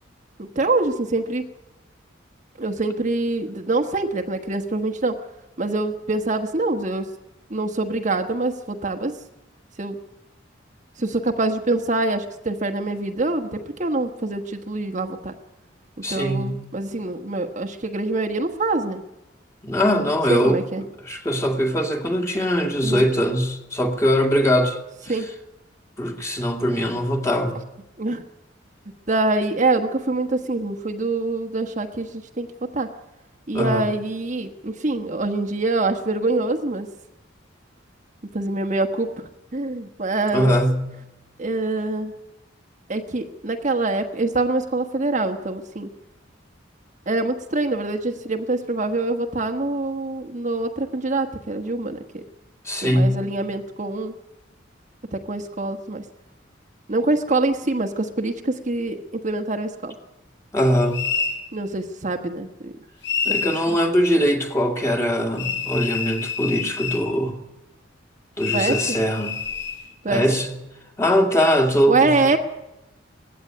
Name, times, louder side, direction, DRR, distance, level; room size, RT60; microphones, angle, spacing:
voice 1, 0.4-1.5 2.6-5.2 5.6-7.1 7.5-9.2 9.8-10.0 11.0-15.3 16.1-19.0 20.3-20.8 22.8-23.1 25.1-25.3 28.0-28.2 29.1-32.9 33.5-36.9 38.3-40.5 41.4-42.1 42.9-45.9 47.1-52.2 52.8-54.1 55.1-56.0 56.9-59.9 61.5-62.7 63.3-63.8 68.4-69.0 70.0-70.2 71.9-72.4, right 2 dB, 40° right, 5 dB, 1.2 m, -25 dB
voice 2, 16.0-16.6 19.6-20.6 21.1-24.8 25.0-25.1 26.0-27.6 33.5-33.9 40.3-40.8 52.6-53.2 60.5-61.1 63.2-67.4 68.4-69.4 70.1-70.5 71.0-72.4, equal, 15° left, 4 dB, 2.3 m, -21 dB
sound 1, 60.9-61.4 63.0-63.6 65.4-67.1 68.4-69.8, left 6 dB, 65° left, 7.6 m, -27 dB
19.0 x 15.5 x 9.3 m, 0.95 s
head